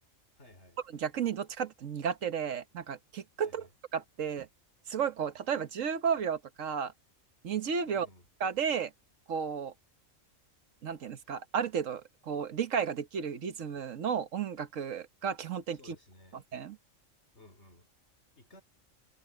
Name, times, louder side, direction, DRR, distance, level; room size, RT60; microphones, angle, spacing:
voice 1, 0.4-0.8 3.4-3.7 7.9-8.3 15.7-16.4 17.3-17.9 18.3-18.6, left 2 dB, 60° left, 4.2 m, -56 dB
voice 2, 0.9-3.6 3.9-4.5 4.9-6.9 7.4-8.1 8.4-8.9 9.3-9.7 10.8-15.8 16.3-16.8, right 7 dB, 80° right, 1.5 m, -33 dB
omnidirectional pair, 1.3 m